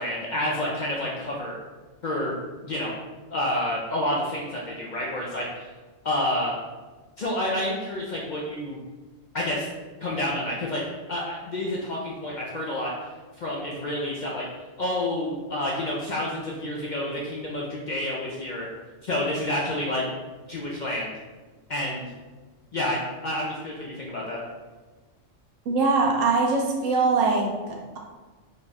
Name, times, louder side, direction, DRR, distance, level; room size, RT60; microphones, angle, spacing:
voice 1, 0.0-1.6 2.0-2.3 2.6-2.9 3.3-5.7 6.0-6.6 7.2-8.8 9.3-9.7 10.0-10.8 11.1-12.9 13.4-14.4 14.8-18.7 19.0-20.0 20.5-21.1 21.7-22.1 22.7-24.4, left 1 dB, 60° left, -4 dB, 0.5 m, -29 dB
voice 2, 25.7-28.0, right 3 dB, 90° right, 0 dB, 1.1 m, -23 dB
3.2 x 2.3 x 4.0 m, 1.3 s
omnidirectional pair, 1.3 m